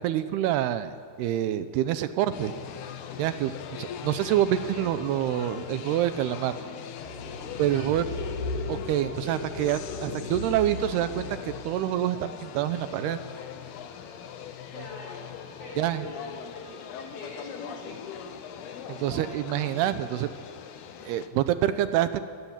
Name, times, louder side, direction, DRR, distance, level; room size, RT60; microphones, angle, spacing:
voice 1, 0.0-2.5 3.2-6.6 7.6-8.0 8.7-13.2 15.8-16.0 18.9-20.3 21.0-22.3, right 12 dB, 80° right, 12 dB, 2.7 m, -27 dB
sound 1, 2.3-21.3, left 8 dB, 80° left, 3.1 m, -41 dB
sound 2, 7.0-11.8, left 3 dB, 60° left, 3.2 m, -36 dB
voice 2, 7.7-8.3 14.7-15.3 15.6-18.4, left 2 dB, 40° left, -2 dB, 5.0 m, -43 dB
26.5 x 18.5 x 7.3 m, 2.2 s
omnidirectional pair, 4.7 m